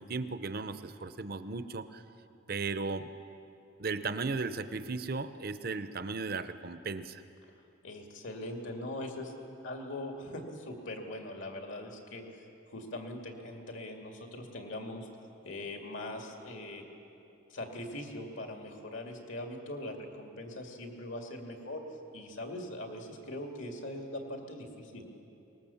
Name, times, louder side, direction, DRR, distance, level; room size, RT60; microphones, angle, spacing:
voice 1, 0.0-2.0 2.5-3.1 3.8-7.2, right 4 dB, 45° right, 11 dB, 0.8 m, -36 dB
voice 2, 7.8-9.3 9.6-12.5 12.7-15.1 15.4-16.8 17.5-21.8 22.1-25.0, left 1 dB, 70° left, 2 dB, 2.4 m, -41 dB
23.5 x 19.5 x 7.1 m, 2.9 s
head